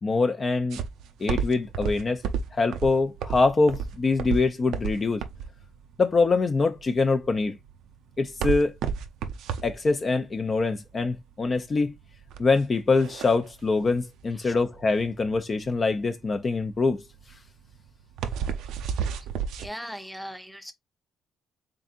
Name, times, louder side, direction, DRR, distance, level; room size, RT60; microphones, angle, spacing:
voice 1, 0.0-0.8 1.2-2.2 2.5-5.2 6.0-7.6 8.2-8.7 9.6-11.9 12.4-17.0, left 3 dB, 35° left, 0.5 m, -24 dB
sound 1, 0.7-19.7, right 7 dB, 90° right, 0.4 m, -32 dB
voice 2, 19.6-20.7, equal, ahead, 0.7 m, -38 dB
3.8 x 3.6 x 2.4 m
cardioid pair, 90°, 0 cm